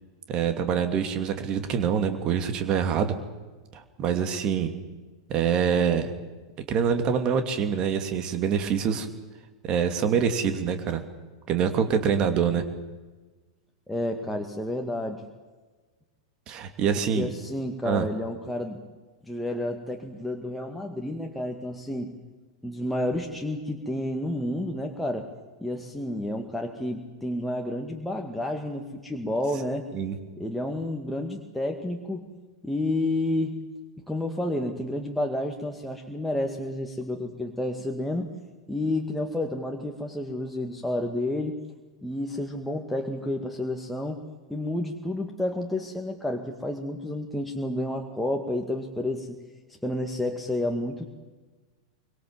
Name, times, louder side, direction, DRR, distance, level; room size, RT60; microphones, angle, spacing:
voice 1, 0.3-3.1 3.7-4.7 5.3-6.1 6.7-9.1 9.6-11.0 11.5-12.6 16.5-17.3 17.8-18.1 29.9-30.1, right 7 dB, 30° right, 7 dB, 2.6 m, -25 dB
voice 2, 13.9-15.2 17.1-18.8 19.3-22.1 22.6-25.3 25.6-29.9 30.4-32.3 32.6-33.5 34.1-38.3 38.7-41.6 42.0-44.2 44.5-49.3 49.8-51.1, left 1 dB, 5° left, 2 dB, 2.2 m, -30 dB
25.5 x 24.5 x 7.5 m, 1.3 s
figure-of-eight pair, 95°, 2 cm